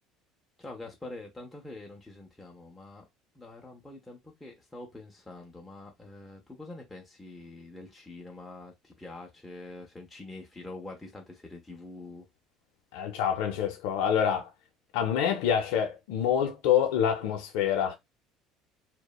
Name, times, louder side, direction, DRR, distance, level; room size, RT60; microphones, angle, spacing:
voice 1, 0.6-3.0 3.3-12.3, left 2 dB, 5° left, 0.4 m, -45 dB
voice 2, 12.9-14.5 14.9-18.0, left 9 dB, 80° left, 0.4 m, -26 dB
2.9 x 2.0 x 2.2 m
cardioid pair, 175°, 0 cm